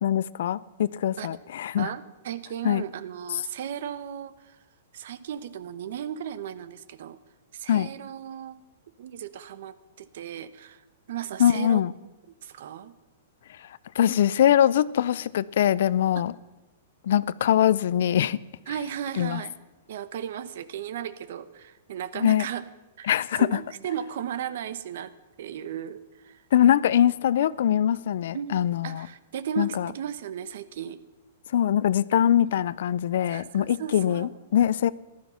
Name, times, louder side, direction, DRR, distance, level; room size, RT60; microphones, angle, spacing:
voice 1, 0.0-1.9 2.6-2.8 7.7-7.9 11.4-11.9 13.9-16.3 17.0-18.4 19.2-19.4 22.1-22.5 23.1-23.6 26.5-29.1 29.6-29.9 31.5-34.9, left 10 dB, 65° left, 20 dB, 0.5 m, -22 dB
voice 2, 1.8-4.6 4.9-7.2 7.5-8.7 9.0-10.8 11.1-11.8 12.4-12.9 18.7-19.6 19.9-22.6 23.0-25.1 25.4-26.4 28.3-31.0 32.4-32.5 33.3-34.3, right 9 dB, 60° right, 15 dB, 0.9 m, -35 dB
15.0 x 12.5 x 5.7 m, 1.1 s
hypercardioid pair, 160°, 0 cm